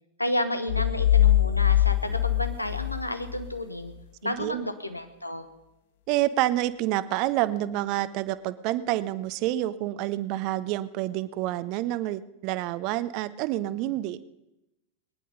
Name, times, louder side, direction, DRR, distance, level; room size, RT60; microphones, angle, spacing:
voice 1, 0.2-3.9 4.2-5.5, left 1 dB, 85° left, 9 dB, 1.1 m, -31 dB
sound 1, 0.7-3.5, left 12 dB, 50° left, 0.7 m, -22 dB
voice 2, 4.2-4.7 6.1-14.2, right 15 dB, 45° right, 15 dB, 0.7 m, -28 dB
20.0 x 10.5 x 5.3 m, 0.95 s
figure-of-eight pair, 90°, 0 cm